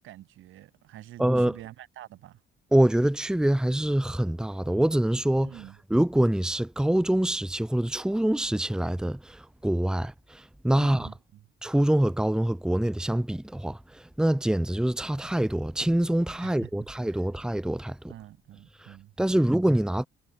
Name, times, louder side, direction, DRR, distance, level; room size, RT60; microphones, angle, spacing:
voice 1, 0.0-2.4 5.4-5.8 10.7-11.4 16.4-17.2 18.1-19.5, right 14 dB, 85° right, 4.1 m, -47 dB
voice 2, 1.2-1.6 2.7-5.5 5.9-11.1 11.6-18.0 18.8-20.1, right 1 dB, 5° right, 1.0 m, -25 dB
cardioid pair, 90°, 20 cm